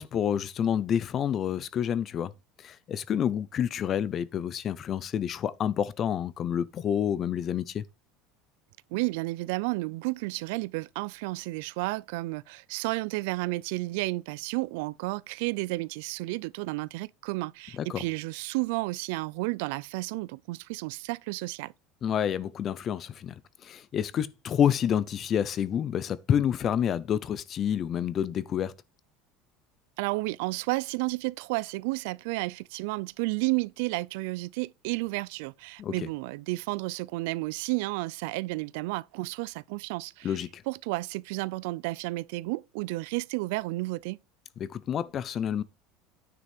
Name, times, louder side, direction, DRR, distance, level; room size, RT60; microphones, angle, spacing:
voice 1, 0.0-2.3 2.6-7.8 17.8-18.0 22.0-23.3 23.6-28.7 35.8-36.1 40.2-40.6 44.6-45.6, left 9 dB, 30° left, 0.6 m, -28 dB
voice 2, 8.9-21.7 30.0-40.4 40.7-44.2, right 22 dB, 75° right, 0.4 m, -32 dB
9.7 x 6.0 x 4.3 m
cardioid pair, 160°, 0 cm